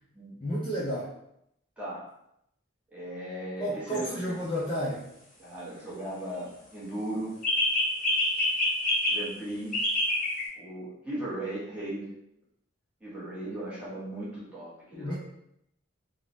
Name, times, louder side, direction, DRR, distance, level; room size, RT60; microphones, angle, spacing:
voice 1, 0.4-1.1 3.6-5.1 14.9-15.2, equal, 25° left, -7 dB, 0.4 m, -31 dB
voice 2, 2.9-4.4 5.4-7.3 9.1-9.8 10.6-12.1 13.0-15.2, right 1 dB, 5° right, -8 dB, 0.8 m, -37 dB
sound 1, 3.9-4.1 7.4-9.2 9.7-10.4, left 1 dB, 40° left, 0.8 m, -26 dB
3.1 x 2.0 x 2.4 m, 0.77 s
head